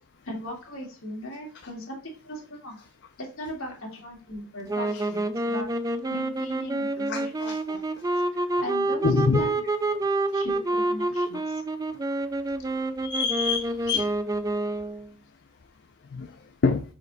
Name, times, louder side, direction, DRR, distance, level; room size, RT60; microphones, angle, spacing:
voice 1, 0.2-2.8 3.2-5.7 6.1-8.0 8.6-9.0 9.4-9.8 10.3-11.6, left 1 dB, 65° left, -1 dB, 2.1 m, -38 dB
sound 1, 4.7-15.1, right 2 dB, 15° right, 0.3 m, -28 dB
voice 2, 9.0-9.5 13.0-14.1 16.1-16.3 16.6-16.8, left 4 dB, 50° left, 6 dB, 0.5 m, -24 dB
5.1 x 5.1 x 3.9 m, 0.37 s
head